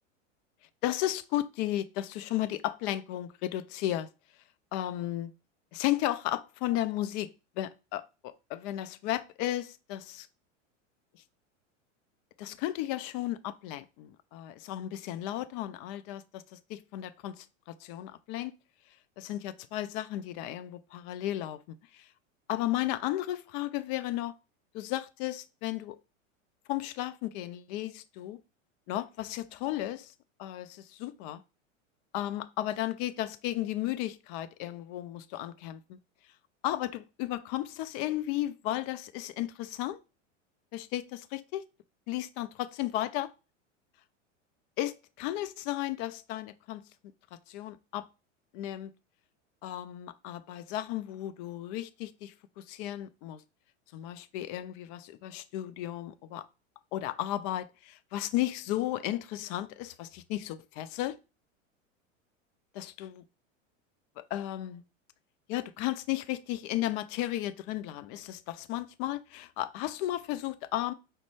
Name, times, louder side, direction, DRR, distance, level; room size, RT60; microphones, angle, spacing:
voice 1, 0.8-4.1 4.7-5.3 5.7-10.3 12.4-18.5 19.2-22.0 22.5-24.3 24.7-26.0 26.7-28.4 28.9-30.1 30.4-31.4 32.1-36.0 36.6-40.0 40.7-41.6 42.1-43.3 44.8-46.8 47.5-48.1 48.5-48.9 49.6-53.4 53.9-56.4 56.9-61.2 62.7-63.2 64.2-64.8 65.5-70.9, left 14 dB, 45° left, 0.4 m, -34 dB
5.1 x 2.1 x 3.2 m
hypercardioid pair, 100°, 38 cm